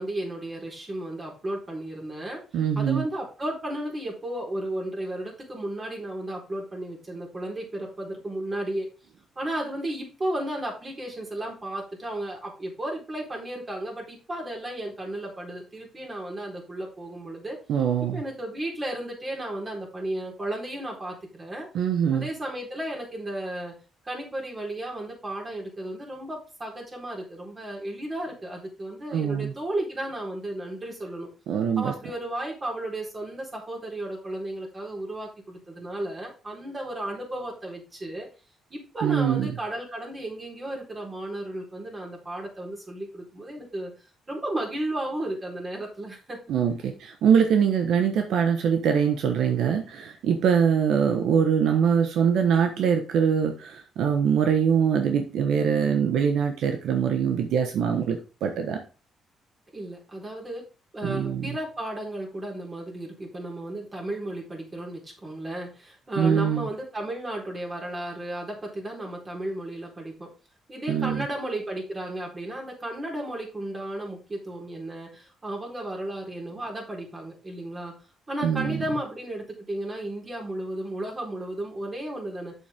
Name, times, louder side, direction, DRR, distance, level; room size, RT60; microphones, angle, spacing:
voice 1, 0.0-2.4 2.7-8.9 9.4-17.6 18.1-21.7 22.1-23.7 24.0-31.3 31.8-38.3 38.7-43.9 44.3-46.4 59.7-60.6 60.9-70.3 70.7-77.9 78.3-82.5, right 1 dB, 30° right, -1 dB, 4.2 m, -34 dB
voice 2, 2.5-3.0 17.7-18.2 21.7-22.3 29.1-29.5 31.5-31.9 39.0-39.5 46.5-58.8 61.0-61.6 66.2-66.7 70.9-71.3 78.4-78.8, right 7 dB, 80° right, 5 dB, 1.2 m, -23 dB
8.1 x 7.1 x 3.6 m, 0.34 s
cardioid pair, 95°, 0 cm